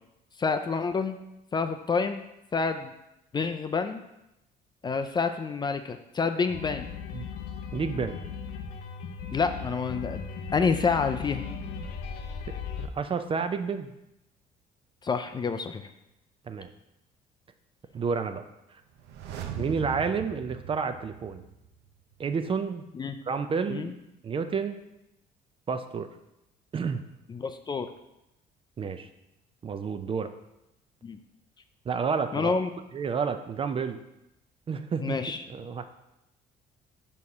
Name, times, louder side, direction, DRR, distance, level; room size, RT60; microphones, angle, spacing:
voice 1, 0.4-1.2 1.5-2.2 2.5-2.9 3.3-4.0 4.8-6.9 9.3-11.4 15.0-15.9 19.6-19.7 22.9-23.2 23.7-23.9 27.3-27.9 31.0-31.2 32.3-32.7 35.0-35.4, left 5 dB, 25° left, 8 dB, 0.4 m, -28 dB
sound 1, 6.5-12.9, left 6 dB, 80° left, 0.6 m, -37 dB
voice 2, 7.7-8.2 12.8-13.9 16.5-16.7 17.9-18.4 19.6-21.4 22.2-22.8 23.3-23.9 24.2-24.8 25.7-26.1 26.7-27.0 28.8-29.1 29.6-30.3 31.9-32.5 32.9-34.0 34.7-35.2 35.5-35.8, right 5 dB, 30° right, 9 dB, 0.5 m, -30 dB
sound 2, 18.9-21.9 22.1-22.2, right 8 dB, 80° right, 0.6 m, -39 dB
5.4 x 4.3 x 4.8 m, 0.88 s
cardioid pair, 110°, 17 cm